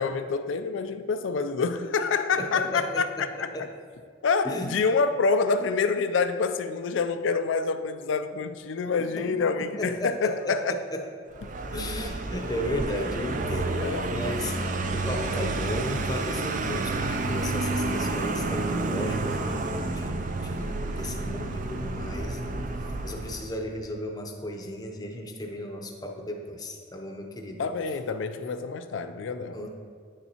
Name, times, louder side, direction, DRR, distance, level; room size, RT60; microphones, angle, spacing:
voice 1, 0.0-3.1 3.4-3.7 4.2-10.8 13.8-14.2 14.9-15.0 27.6-29.6, left 4 dB, 85° left, 10 dB, 0.4 m, -27 dB
voice 2, 2.4-3.7 4.4-4.7 9.0-9.3 9.6-11.0 11.7-14.6 14.9-27.6 29.5-29.7, left 1 dB, 20° left, 3 dB, 0.6 m, -35 dB
Vehicle, 11.3-23.6, right 2 dB, 40° right, 0.4 m, -30 dB
9.6 x 6.9 x 2.9 m, 2.1 s
head